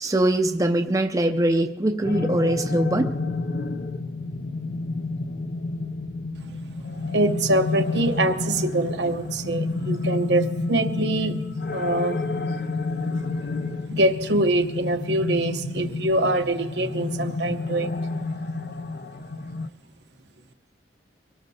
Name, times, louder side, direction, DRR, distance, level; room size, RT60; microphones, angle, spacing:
voice 1, 0.0-3.1, right 1 dB, 20° right, 6 dB, 0.5 m, -22 dB
sound 1, 2.0-19.7, left 3 dB, 55° left, 0.5 m, -30 dB
voice 2, 7.1-11.4 11.7-12.4 13.9-17.9, right 1 dB, 80° right, 6 dB, 0.9 m, -24 dB
24.0 x 18.0 x 2.8 m, 1.3 s
head